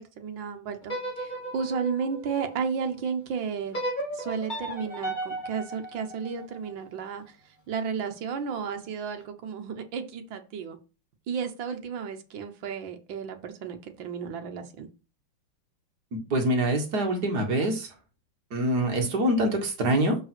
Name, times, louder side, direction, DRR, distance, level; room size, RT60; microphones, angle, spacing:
voice 1, 0.0-3.8 4.1-7.4 7.7-10.8 11.3-14.9, right 6 dB, 65° right, 1.8 m, -33 dB
sound 1, 0.8-3.0 3.7-6.9, right 1 dB, 20° left, 2.6 m, -35 dB
voice 2, 16.1-17.9 18.5-20.2, right 1 dB, 50° right, 2.1 m, -25 dB
6.6 x 5.3 x 6.0 m
omnidirectional pair, 2.3 m